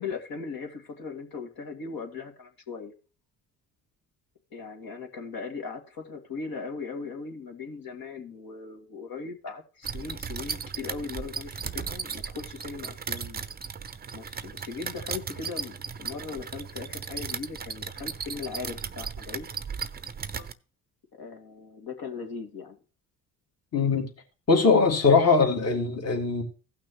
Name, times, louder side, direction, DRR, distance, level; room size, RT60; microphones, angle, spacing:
voice 1, 0.0-2.9 4.5-13.4 14.1-19.5 21.1-22.8, left 5 dB, 55° left, 2.3 m, -38 dB
sound 1, 9.8-20.5, right 6 dB, 25° right, 0.7 m, -36 dB
voice 2, 23.7-24.1 24.5-26.4, left 4 dB, 35° left, 2.2 m, -21 dB
16.0 x 6.0 x 3.0 m
hypercardioid pair, 60°, 42 cm